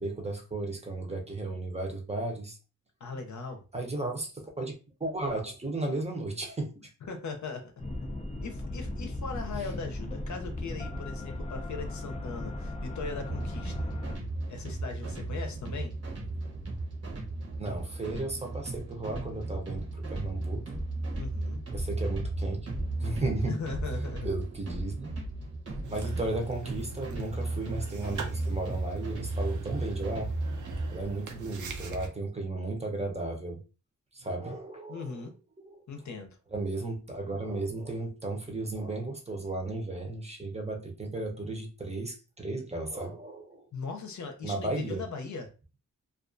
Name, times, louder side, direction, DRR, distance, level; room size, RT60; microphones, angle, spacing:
voice 1, 0.0-2.6 3.7-4.7 5.0-6.9 9.6-9.7 12.6-12.7 17.6-20.8 21.7-22.7 23.0-23.6 24.2-25.1 25.9-30.3 30.9-33.6 34.1-35.3 35.6-35.8 36.5-43.7 44.4-45.0, right 2 dB, 20° right, 0.6 m, -34 dB
voice 2, 3.0-3.6 7.0-7.7 8.4-13.9 14.5-15.9 21.1-21.6 23.5-24.3 34.9-35.3 35.9-36.4 43.7-45.5, left 4 dB, 65° left, 0.6 m, -39 dB
sound 1, 7.8-14.2, left 1 dB, 25° left, 0.4 m, -37 dB
sound 2, 13.3-30.9, right 2 dB, 50° right, 0.9 m, -35 dB
sound 3, 25.8-32.1, right 4 dB, 70° right, 0.6 m, -43 dB
2.4 x 2.3 x 2.5 m
wide cardioid pair, 90°, 31 cm